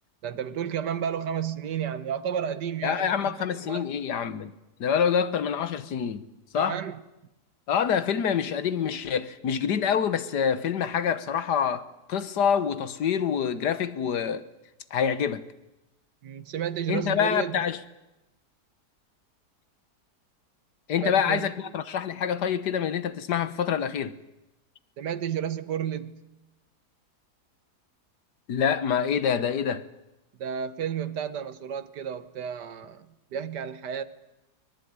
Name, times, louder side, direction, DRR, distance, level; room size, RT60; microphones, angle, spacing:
voice 1, 0.2-3.9 6.5-7.0 16.2-17.6 20.9-21.7 25.0-26.2 30.4-34.0, right 8 dB, 90° right, 1.8 m, -32 dB
voice 2, 2.8-4.5 4.8-6.2 6.5-6.8 7.7-14.4 14.9-15.4 16.9-17.8 20.9-24.2 28.5-29.8, left 8 dB, 80° left, 1.7 m, -26 dB
23.5 x 20.0 x 9.7 m
omnidirectional pair, 1.8 m